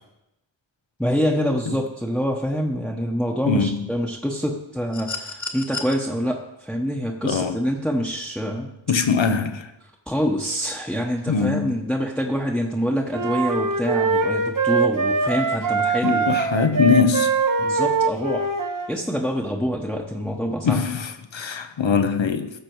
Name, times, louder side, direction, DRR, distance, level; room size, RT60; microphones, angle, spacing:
voice 1, 1.0-8.7 10.1-16.3 17.6-18.5 18.9-20.8, equal, ahead, 1.0 m, -26 dB
voice 2, 3.5-3.8 7.2-7.6 8.9-9.7 11.3-11.8 16.0-17.3 20.6-22.5, left 5 dB, 75° left, 0.9 m, -22 dB
sound 1, 4.9-5.9 7.5-7.6, left 4 dB, 40° left, 1.3 m, -32 dB
sound 2, 13.1-18.9, right 4 dB, 45° right, 0.9 m, -22 dB
15.0 x 6.0 x 4.6 m
wide cardioid pair, 60°, 45 cm